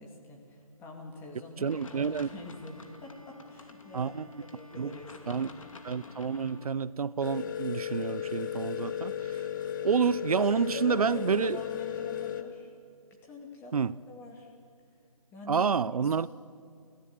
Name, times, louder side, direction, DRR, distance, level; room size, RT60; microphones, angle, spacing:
voice 1, 0.0-5.4 10.4-12.7 13.2-13.7 14.1-14.5 15.3-15.7 16.0-16.3, left 2 dB, 10° left, 2.5 m, -46 dB
Bowed string instrument, 1.6-7.5, left 3 dB, 85° left, 5.1 m, -53 dB
voice 2, 1.6-2.3 3.9-4.3 4.8-4.9 5.3-5.5 5.8-9.3 9.8-11.6 13.7-13.9 15.5-16.3, right 6 dB, 85° right, 0.6 m, -29 dB
sound 1, 1.7-6.7, left 4 dB, 65° left, 2.6 m, -51 dB
sound 2, 7.2-12.4, left 9 dB, 35° left, 1.4 m, -35 dB
24.0 x 15.5 x 8.8 m
hypercardioid pair, 160°, 18 cm